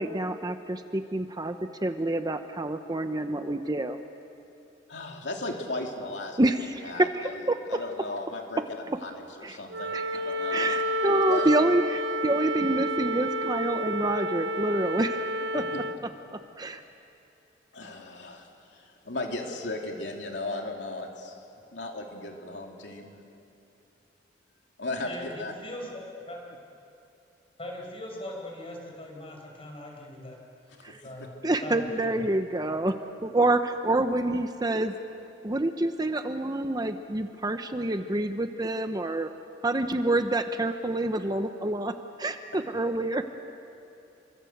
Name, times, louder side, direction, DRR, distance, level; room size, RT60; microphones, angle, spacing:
voice 1, 0.0-4.0 6.4-7.8 9.4-9.6 9.9-10.1 10.5-15.2 15.5-15.6 16.3-16.8 30.8-31.0 31.4-34.9 35.4-39.3 39.6-43.2, right 2 dB, 20° right, 8 dB, 0.9 m, -27 dB
voice 2, 4.9-6.4 6.8-7.4 7.7-8.6 9.0-10.7 11.1-11.5 15.5-15.8 17.7-21.4 21.7-23.1 24.8-25.5 30.8-31.1, left 2 dB, 70° left, 1 dB, 3.0 m, -36 dB
Wind instrument woodwind instrument, 9.7-16.0, equal, 75° right, 0.9 m, -30 dB
voice 3, 25.1-26.4 27.6-30.4 31.0-31.3 31.6-32.2, left 1 dB, 30° left, 0 dB, 5.8 m, -40 dB
29.5 x 24.0 x 8.0 m, 2.8 s
head